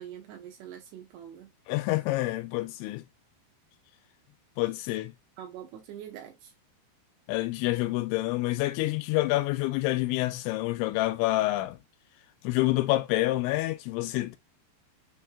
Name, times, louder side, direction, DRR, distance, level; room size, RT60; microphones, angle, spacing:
voice 1, 0.0-1.5 5.4-6.5, right 10 dB, 80° right, 2.7 m, -44 dB
voice 2, 1.7-3.0 4.6-5.1 7.3-11.8 12.4-14.4, left 18 dB, 85° left, 2.9 m, -27 dB
6.5 x 3.1 x 2.2 m
omnidirectional pair, 5.2 m